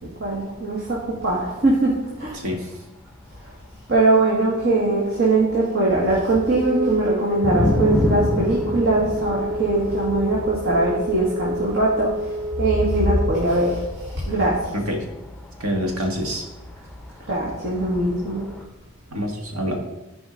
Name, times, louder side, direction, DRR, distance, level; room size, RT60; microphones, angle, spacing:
voice 1, 0.0-1.9 2.2-2.4 3.9-12.1 12.6-13.8 14.3-14.6 17.3-18.5, right 2 dB, 55° right, -5 dB, 1.8 m, -21 dB
sound 1, 1.3-1.4 5.9-6.0 6.3-18.6, left 1 dB, 5° left, 0.7 m, -29 dB
voice 2, 2.3-2.8 14.7-15.0 15.6-16.4 19.1-19.7, equal, 85° right, 1 dB, 1.8 m, -26 dB
Wind instrument woodwind instrument, 6.4-13.5, equal, 30° right, 0.8 m, -29 dB
14.0 x 5.1 x 4.0 m, 1.0 s
head